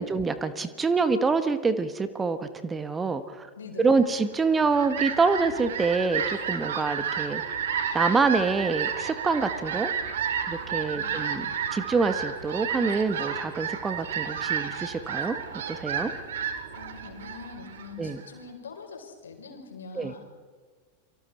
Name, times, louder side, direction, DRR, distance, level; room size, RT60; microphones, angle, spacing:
voice 1, 0.0-3.5 3.8-7.4 7.9-9.9 10.5-11.4 11.7-15.4 15.7-16.1 18.0-18.2 19.9-20.1, right 4 dB, 15° right, 11 dB, 1.3 m, -26 dB
voice 2, 3.6-4.0 10.9-11.6 16.7-20.2, left 4 dB, 65° left, 3 dB, 4.7 m, -44 dB
Fowl, 4.4-18.3, right 7 dB, 60° right, 2.5 m, -31 dB
29.0 x 24.5 x 4.4 m, 1.5 s
figure-of-eight pair, 90°, 0 cm